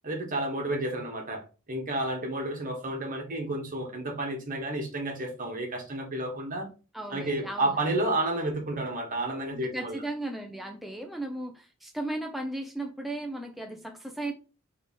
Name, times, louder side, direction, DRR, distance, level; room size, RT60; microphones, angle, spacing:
voice 1, 0.0-6.7 7.1-10.0, right 1 dB, 40° right, 1.3 m, -31 dB
voice 2, 6.9-7.7 9.5-14.3, right 1 dB, ahead, 0.4 m, -36 dB
3.3 x 3.3 x 4.1 m
head